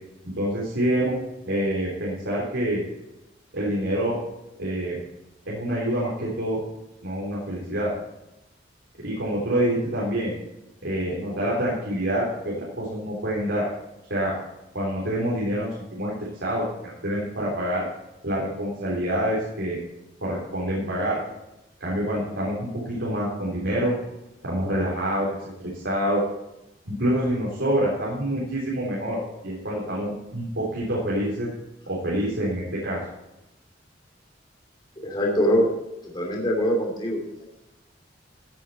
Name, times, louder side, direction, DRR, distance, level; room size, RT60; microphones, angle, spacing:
voice 1, 0.2-1.1 1.5-2.8 3.5-4.2 4.6-5.0 5.5-6.6 7.0-7.9 9.0-10.3 10.8-13.7 14.1-14.3 14.7-17.8 18.2-19.8 20.2-21.2 21.8-23.9 24.4-25.3 25.6-26.2 26.9-31.5 31.9-33.0, equal, 90° right, -5 dB, 3.7 m, -26 dB
voice 2, 35.0-35.7 36.1-37.2, equal, 25° left, -1 dB, 2.9 m, -22 dB
16.0 x 8.8 x 4.3 m, 0.96 s
head